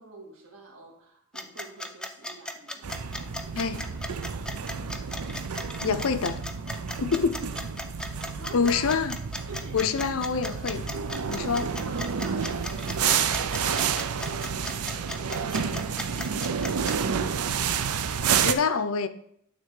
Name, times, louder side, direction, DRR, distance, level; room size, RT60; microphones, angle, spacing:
voice 1, 0.0-3.9 4.3-5.3 7.9-8.9 9.5-10.7 11.5-15.3, right 3 dB, 65° right, 2.0 m, -46 dB
sound 1, 1.3-17.0, left 1 dB, 5° left, 0.4 m, -36 dB
sound 2, 2.8-18.5, right 7 dB, 90° right, 0.6 m, -30 dB
voice 2, 5.8-6.4 7.0-7.4 8.5-9.2 9.7-10.9 11.3-11.7 18.4-19.1, left 5 dB, 70° left, 0.6 m, -26 dB
9.4 x 3.6 x 6.5 m
head